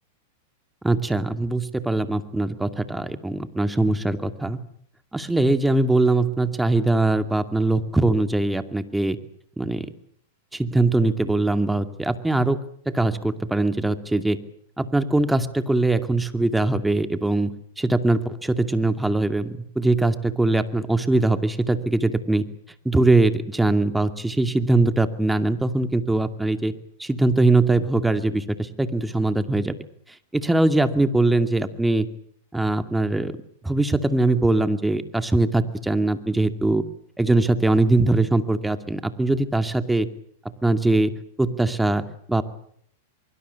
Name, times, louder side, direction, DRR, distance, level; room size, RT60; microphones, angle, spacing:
voice 1, 0.8-4.6 5.1-9.2 9.6-9.9 10.5-12.6 12.9-14.4 14.8-17.5 17.8-22.4 22.8-26.7 27.0-29.8 30.3-32.1 32.5-33.3 33.6-36.8 37.2-40.1 40.6-42.4, right 2 dB, 5° right, 10 dB, 2.4 m, -21 dB
24.5 x 24.0 x 8.3 m, 0.64 s
hypercardioid pair, 115°, 0 cm